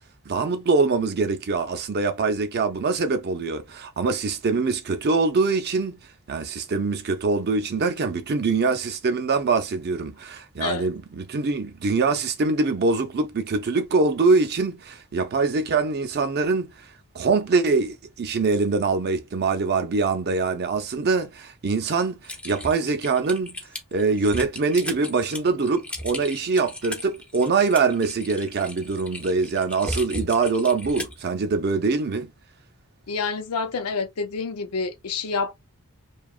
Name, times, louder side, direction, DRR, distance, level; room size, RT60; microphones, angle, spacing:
voice 1, 0.3-6.0 6.3-16.7 17.1-23.6 23.9-32.3, right 4 dB, 45° right, 0.5 m, -23 dB
Typing, 22.2-31.2, left 1 dB, 5° left, 0.5 m, -36 dB
voice 2, 33.1-35.5, left 4 dB, 80° left, 0.6 m, -28 dB
2.8 x 2.3 x 2.4 m
head